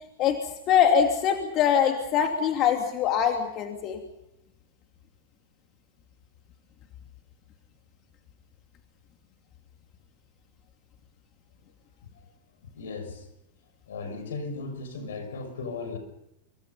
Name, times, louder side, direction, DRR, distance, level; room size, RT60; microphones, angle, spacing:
voice 1, 0.7-4.0, left 8 dB, 40° left, 4 dB, 2.8 m, -23 dB
voice 2, 12.7-13.3 13.9-16.0, left 4 dB, 75° left, 8 dB, 6.5 m, -36 dB
27.0 x 24.5 x 5.6 m, 0.87 s
hypercardioid pair, 100°, 0 cm